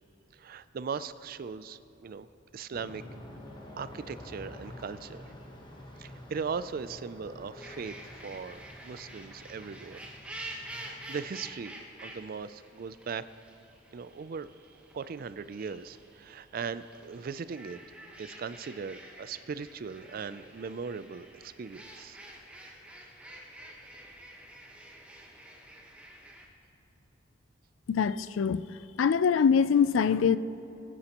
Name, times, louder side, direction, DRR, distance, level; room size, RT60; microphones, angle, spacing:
voice 1, 0.4-2.3 2.5-3.0 3.8-5.2 6.0-7.9 8.2-10.0 10.7-13.2 13.9-14.5 14.9-17.8 18.2-22.2, right 5 dB, 45° right, 14 dB, 0.3 m, -39 dB
Aircraft, 2.7-11.7, left 1 dB, 25° left, 1.1 m, -49 dB
sound 1, 7.6-26.5, right 1 dB, 5° right, 1.1 m, -48 dB
voice 2, 27.9-28.6 29.0-30.4, left 6 dB, 70° left, 15 dB, 0.4 m, -23 dB
21.5 x 9.9 x 3.0 m, 3.0 s
head